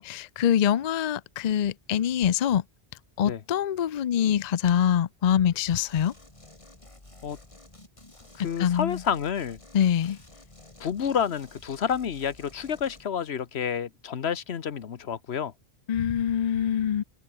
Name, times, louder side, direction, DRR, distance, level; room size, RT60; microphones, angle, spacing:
voice 1, 0.0-2.6 3.2-6.1 8.6-9.0 9.7-10.2 15.9-17.0, left 9 dB, 50° left, 0.6 m, -24 dB
sound 1, 5.7-13.0, left 2 dB, 30° left, 3.0 m, -51 dB
voice 2, 8.3-9.6 10.8-15.5, left 8 dB, 85° left, 1.3 m, -29 dB
omnidirectional pair, 1.1 m